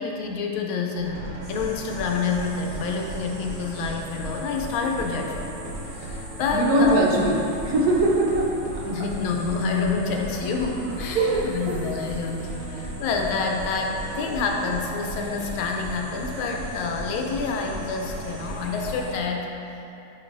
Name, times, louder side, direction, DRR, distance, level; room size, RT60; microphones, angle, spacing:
voice 1, 0.0-7.1 8.8-19.5, left 4 dB, 80° left, 1 dB, 1.5 m, -28 dB
sound 1, 0.9-19.2, right 1 dB, 80° right, 1.9 m, -36 dB
sound 2, 1.4-19.1, right 2 dB, 40° right, 1.4 m, -48 dB
voice 2, 6.5-8.5 8.7-8.8 11.1-11.8 12.2-12.3, right 1 dB, 60° right, -3 dB, 1.1 m, -21 dB
9.7 x 5.3 x 2.6 m, 2.8 s
omnidirectional pair, 2.3 m